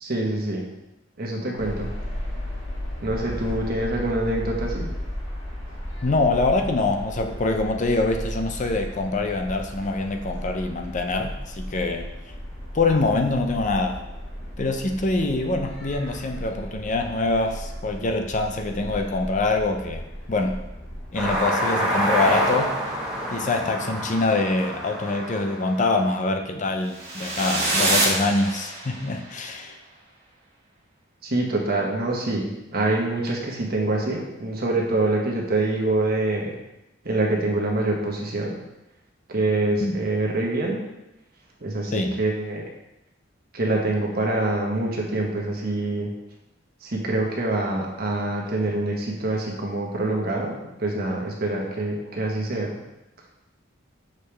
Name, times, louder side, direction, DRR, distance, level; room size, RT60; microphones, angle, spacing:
voice 1, 0.0-0.6 1.2-1.9 3.0-4.9 31.2-36.5 37.0-38.6 39.3-40.8 41.6-42.6 43.5-46.1 46.8-50.5 50.8-52.8, right 2 dB, 50° right, -1 dB, 1.2 m, -25 dB
sound 1, 1.6-21.4, equal, 75° left, 2.0 m, -35 dB
voice 2, 6.0-12.1 12.7-14.0 14.6-20.0 20.3-20.6 21.1-22.9 23.3-29.8 39.8-40.0 41.9-42.2, left 2 dB, 40° left, 5 dB, 0.5 m, -24 dB
sound 2, 21.2-26.1, equal, 5° right, 1.4 m, -27 dB
sound 3, 26.9-29.1, right 2 dB, 30° right, 1.9 m, -25 dB
6.4 x 5.2 x 3.4 m, 0.93 s
head